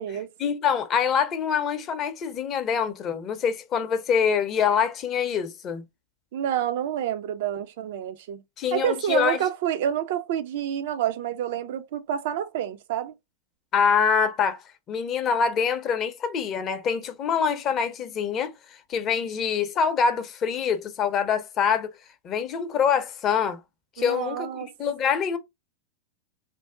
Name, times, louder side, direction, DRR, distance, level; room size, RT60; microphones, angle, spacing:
voice 1, 0.4-5.8 8.6-9.4 13.7-14.6 14.9-18.5 18.9-21.9 22.2-23.6 24.0-24.5 24.8-25.4, left 7 dB, 30° left, 0.5 m, -25 dB
voice 2, 6.3-8.4 8.7-13.1 24.0-24.7, right 10 dB, 55° right, 0.3 m, -28 dB
2.5 x 2.0 x 3.5 m
figure-of-eight pair, 90°, 0 cm